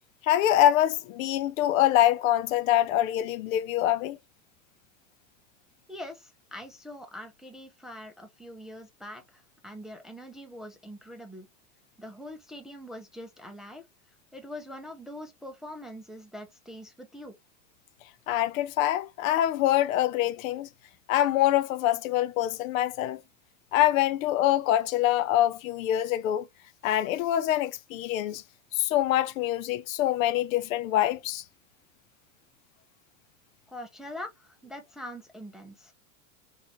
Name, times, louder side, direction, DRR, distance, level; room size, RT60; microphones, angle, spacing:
voice 1, 0.2-4.2 18.3-20.7 21.1-23.2 23.7-26.5 26.8-28.4 28.7-31.4, left 13 dB, 70° left, 0.6 m, -25 dB
voice 2, 5.9-11.5 12.0-13.8 14.3-17.4 33.7-35.9, left 1 dB, ahead, 0.5 m, -43 dB
3.9 x 2.6 x 2.9 m
supercardioid pair, 130°, 42 cm